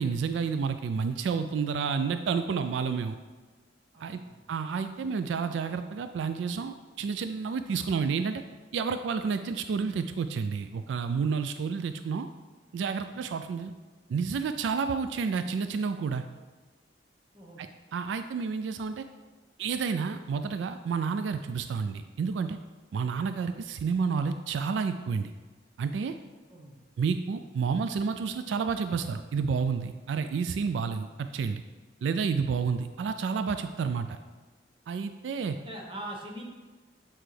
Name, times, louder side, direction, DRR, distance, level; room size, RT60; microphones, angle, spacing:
voice 1, 0.0-3.2 4.0-4.2 4.5-8.4 8.7-12.3 12.7-13.7 14.1-16.2 17.6-19.0 19.6-22.6 22.9-25.3 25.8-26.1 27.0-31.6 32.0-34.2 34.9-35.6, right 5 dB, 80° right, 9 dB, 0.3 m, -30 dB
voice 2, 3.9-4.5 13.1-13.2 17.3-17.6 26.5-26.8 35.6-36.4, right 1 dB, 30° right, 0 dB, 1.0 m, -42 dB
8.1 x 4.4 x 3.3 m, 1.3 s
head